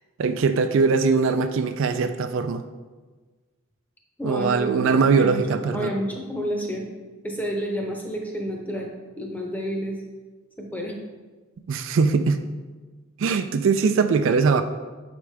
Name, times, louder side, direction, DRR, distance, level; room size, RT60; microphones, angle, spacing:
voice 1, 0.2-2.6 4.2-5.9 11.7-12.4 13.2-14.6, right 5 dB, 60° right, 8 dB, 0.3 m, -21 dB
voice 2, 4.2-6.9 7.2-8.9 9.2-10.0 10.6-11.0, equal, 10° left, 0 dB, 0.7 m, -30 dB
6.9 x 4.9 x 3.3 m, 1.3 s
head